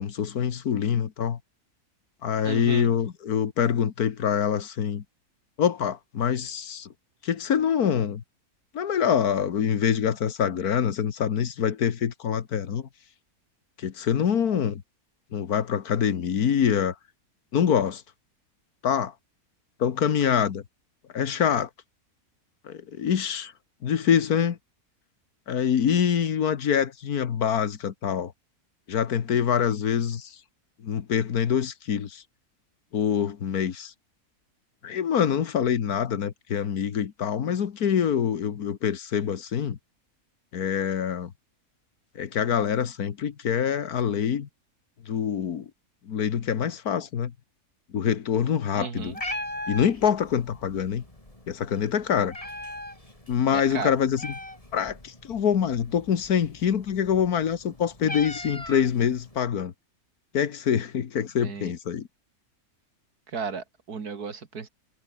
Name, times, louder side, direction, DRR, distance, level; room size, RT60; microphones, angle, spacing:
voice 1, 0.0-1.4 2.2-5.0 5.6-6.9 7.2-8.2 8.7-12.9 13.8-14.8 15.3-17.0 17.5-18.0 18.8-19.1 19.8-20.6 21.1-21.7 22.7-23.5 23.8-24.6 25.5-28.3 28.9-30.4 30.8-32.2 32.9-33.9 34.8-39.8 40.5-41.3 42.2-44.5 45.1-45.7 46.1-47.3 47.9-49.1 49.7-51.0 51.5-52.3 53.3-54.3 54.7-59.7 60.3-62.1, left 8 dB, 80° left, 1.8 m, -25 dB
voice 2, 2.4-2.9 48.8-49.2 53.5-54.0 61.4-61.7 63.3-64.7, right 5 dB, 85° right, 2.7 m, -34 dB
Meow, 48.9-59.4, left 1 dB, 20° left, 4.9 m, -40 dB
omnidirectional pair, 1.6 m